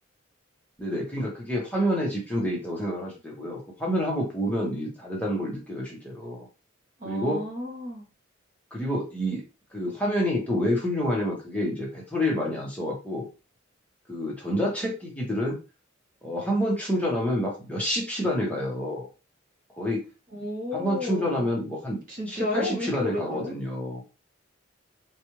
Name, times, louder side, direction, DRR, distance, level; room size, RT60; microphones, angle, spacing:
voice 1, 0.8-6.5 7.0-7.4 8.7-9.4 9.7-13.3 14.1-15.6 16.2-19.1 19.7-20.0 20.7-22.0 22.3-24.0, equal, 5° left, -3 dB, 1.0 m, -28 dB
voice 2, 7.0-8.1 20.3-21.5 22.1-23.5, left 2 dB, 40° right, 0 dB, 0.9 m, -32 dB
4.2 x 2.3 x 3.0 m, 0.31 s
head